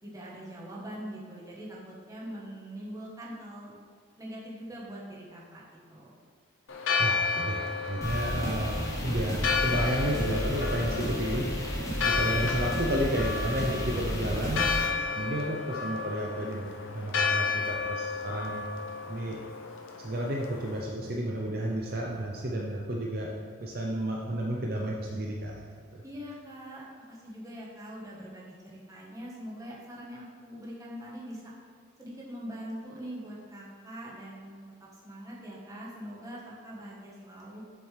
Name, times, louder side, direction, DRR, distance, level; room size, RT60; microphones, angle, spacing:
voice 1, 0.0-3.7 4.2-6.2 26.0-31.5 32.0-34.6 34.9-37.6, equal, 15° right, -5 dB, 1.3 m, -43 dB
Church bell, 6.7-20.8, left 4 dB, 75° left, 0.7 m, -32 dB
voice 2, 7.0-11.5 12.0-14.7 15.2-18.7 19.1-19.4 20.0-23.3 23.6-25.6 25.9-26.0, right 1 dB, 45° right, -1 dB, 0.6 m, -32 dB
sound 1, 8.0-14.9, equal, 15° left, 1.0 m, -33 dB
7.1 x 6.8 x 3.3 m, 2.1 s
head